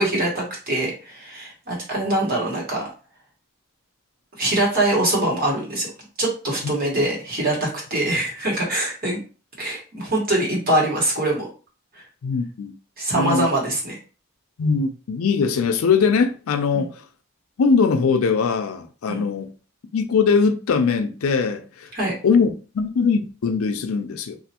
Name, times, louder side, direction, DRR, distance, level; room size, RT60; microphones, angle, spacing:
voice 1, 0.0-2.9 4.4-5.9 6.2-9.2 9.6-11.5 13.0-14.0 16.7-16.8 19.1-19.2 21.9-22.1, right 1 dB, 45° right, 1.3 m, -23 dB
voice 2, 12.2-12.7 13.1-13.5 14.6-16.9 17.6-19.5 19.9-21.9 22.2-22.5 22.7-24.4, left 5 dB, 75° left, 0.4 m, -21 dB
3.1 x 2.5 x 2.8 m
head